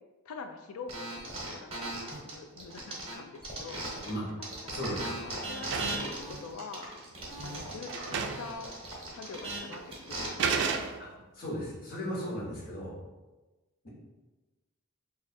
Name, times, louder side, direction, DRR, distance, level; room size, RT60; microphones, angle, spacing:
voice 1, 0.3-3.8 4.6-6.9 7.4-8.8 9.1-10.8, left 4 dB, 80° left, 6 dB, 0.4 m, -45 dB
sound 1, 0.9-4.1 4.4-10.3, right 2 dB, 25° right, 0.9 m, -38 dB
sound 2, 4.0-4.5 4.8-6.2 7.1-7.2 7.6-7.7 7.9-8.6 8.8-8.9 9.7-9.9 10.4-11.3, right 5 dB, 55° right, 0.3 m, -33 dB
voice 2, 4.7-5.1 11.0-11.1 11.3-12.9, equal, 45° left, -4 dB, 1.1 m, -36 dB
3.2 x 2.4 x 4.1 m, 1.2 s
head